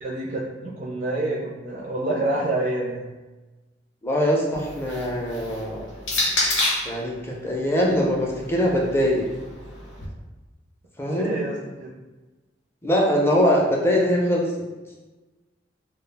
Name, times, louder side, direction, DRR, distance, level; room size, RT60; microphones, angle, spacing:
voice 1, 0.0-3.1 11.1-11.9, right 2 dB, 45° right, -5 dB, 0.4 m, -27 dB
voice 2, 4.0-5.9 6.9-9.2 11.0-11.4 12.8-14.5, equal, 15° left, -2 dB, 0.4 m, -22 dB
sound 1, 4.5-7.0 7.9-10.0, left 2 dB, 90° left, 0.7 m, -29 dB
2.3 x 2.1 x 3.2 m, 1.2 s
head